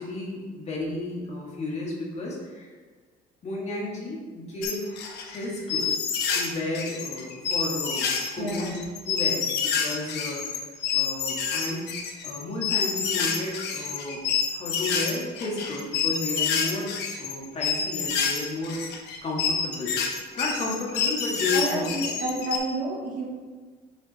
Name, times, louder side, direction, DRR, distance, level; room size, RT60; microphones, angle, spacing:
voice 1, 0.0-2.7 3.4-8.7 9.1-10.5 10.9-11.9 12.2-14.2 14.5-16.9 17.2-18.8 19.2-20.0 20.4-21.8 22.2-22.3, left 2 dB, 40° left, -3 dB, 1.9 m, -33 dB
sound 1, 4.6-6.5 6.7-22.6, left 6 dB, 80° left, 1.0 m, -28 dB
voice 2, 8.4-8.8 21.5-23.3, right 1 dB, 55° right, -2 dB, 1.8 m, -30 dB
6.5 x 4.9 x 4.3 m, 1.5 s
cardioid pair, 110°, 17 cm